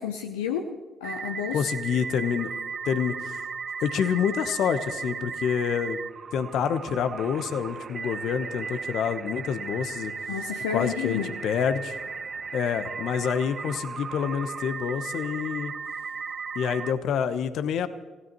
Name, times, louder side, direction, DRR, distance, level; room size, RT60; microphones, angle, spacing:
voice 1, 0.0-1.6 10.3-11.3, left 8 dB, 85° left, 5 dB, 0.7 m, -31 dB
sound 1, 1.0-16.9, right 5 dB, 45° right, 0.8 m, -36 dB
voice 2, 1.5-2.5 2.8-3.4 3.8-6.0 6.3-10.1 10.7-12.0 12.5-15.7 16.5-17.9, left 7 dB, 65° left, 11 dB, 1.0 m, -27 dB
27.0 x 16.5 x 3.1 m, 1.3 s
hypercardioid pair, 45°, 0 cm